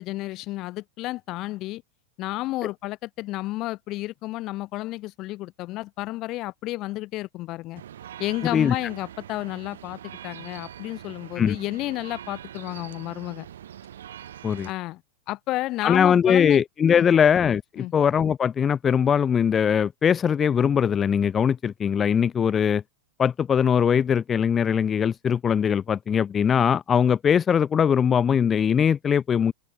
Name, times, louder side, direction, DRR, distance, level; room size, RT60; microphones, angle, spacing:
voice 1, 0.0-1.8 2.2-7.8 8.2-13.5 14.6-15.0 15.3-16.6 17.0-17.2 17.8-17.9, left 18 dB, 40° left, 1.8 m, -31 dB
sound 1, 7.8-14.7, right 10 dB, 60° right, 3.0 m, -43 dB
voice 2, 15.8-22.8 23.2-29.5, left 7 dB, 20° left, 0.5 m, -21 dB
open air
figure-of-eight pair, 90°, 0 cm